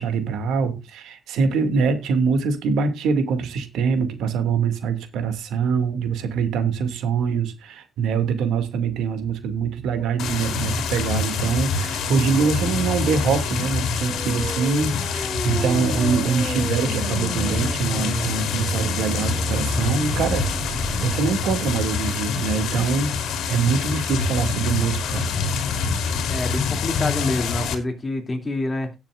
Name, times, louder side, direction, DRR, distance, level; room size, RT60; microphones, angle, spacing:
voice 1, 0.0-20.5 21.0-25.3, right 5 dB, 85° right, 2.2 m, -24 dB
sound 1, 10.2-27.8, left 5 dB, 80° left, 2.4 m, -26 dB
sound 2, 14.0-21.1, right 1 dB, 15° right, 7.8 m, -31 dB
voice 2, 26.3-28.9, left 2 dB, 25° left, 2.6 m, -27 dB
17.5 x 7.3 x 2.5 m
cardioid pair, 125°, 0 cm